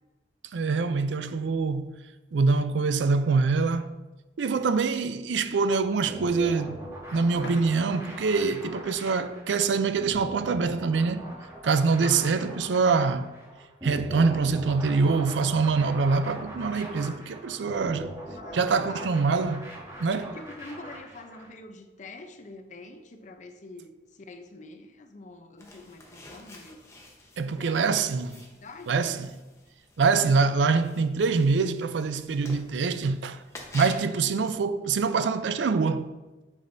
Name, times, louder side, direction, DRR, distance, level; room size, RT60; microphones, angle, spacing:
voice 1, 0.5-1.9 2.3-3.9 4.4-6.8 7.1-11.2 11.6-13.3 13.8-18.2 18.5-19.7 20.0-20.4 27.4-28.4 28.9-29.3 30.0-33.4 33.7-36.1, right 4 dB, 85° right, 0.4 m, -25 dB
sound 1, 6.1-21.5, right 1 dB, 15° right, 1.6 m, -41 dB
sound 2, 7.4-10.0, left 1 dB, 85° left, 1.2 m, -46 dB
voice 2, 12.0-12.6 18.3-19.3 20.3-26.8 27.6-28.1 28.5-29.1, left 2 dB, 45° left, 0.6 m, -45 dB
sound 3, 25.6-34.1, left 2 dB, 15° left, 1.0 m, -48 dB
8.2 x 6.1 x 2.6 m
head